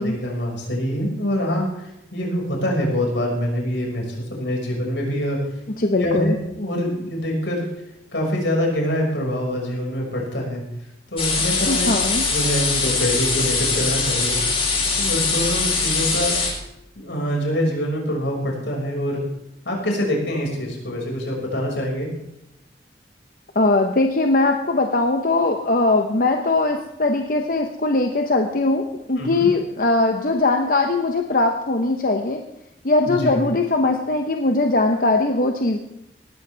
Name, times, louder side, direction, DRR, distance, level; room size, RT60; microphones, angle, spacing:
voice 1, 0.0-1.8 2.1-5.4 6.0-7.6 8.1-10.6 11.1-11.9 12.3-14.4 15.0-16.4 17.0-19.2 19.6-22.1 29.2-29.5 33.1-33.4, equal, 85° left, -1 dB, 5.7 m, -25 dB
voice 2, 5.8-6.4 11.7-12.3 23.5-32.4 32.8-35.8, left 2 dB, 50° left, 4 dB, 1.0 m, -20 dB
sound 1, 11.2-16.5, left 4 dB, 30° left, 4.0 m, -22 dB
18.5 x 14.0 x 3.5 m, 0.85 s
head